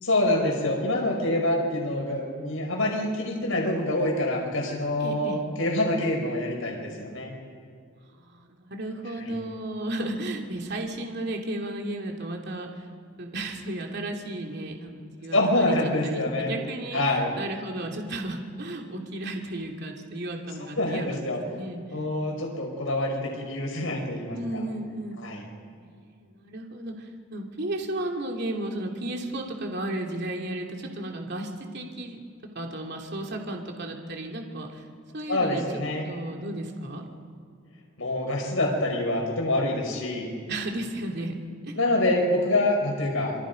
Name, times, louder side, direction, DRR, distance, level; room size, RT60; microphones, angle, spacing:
voice 1, 0.0-7.3 9.2-9.3 15.3-16.5 16.9-17.3 20.8-21.4 21.9-24.6 25.2-25.4 35.3-36.0 38.0-40.3 41.8-43.4, left 1 dB, 75° left, 0 dB, 5.6 m, -26 dB
voice 2, 5.0-5.4 8.2-12.8 13.2-15.7 16.0-17.0 17.4-21.8 24.3-25.2 26.0-32.2 32.5-34.8 35.1-35.6 36.0-37.0 37.5-37.6 40.5-41.3 41.6-41.7, right 1 dB, 55° right, 1 dB, 2.9 m, -34 dB
27.5 x 25.0 x 5.3 m, 2.2 s
head